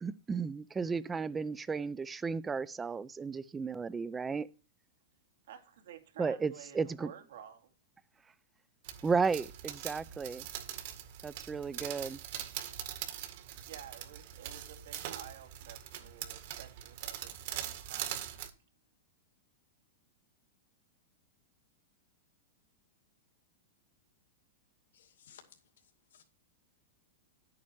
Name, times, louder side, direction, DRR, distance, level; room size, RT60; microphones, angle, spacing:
voice 1, 0.0-4.5 6.2-7.1 9.0-10.5 11.2-12.2, right 5 dB, 10° right, 0.5 m, -34 dB
voice 2, 5.5-7.7 13.6-18.1, right 9 dB, 75° right, 2.5 m, -52 dB
sound 1, 8.8-18.5, right 11 dB, 55° right, 1.9 m, -42 dB
voice 3, 24.9-25.4 26.1-26.2, left 9 dB, 85° left, 2.5 m, -57 dB
11.0 x 8.7 x 4.6 m
supercardioid pair, 160°, 0 cm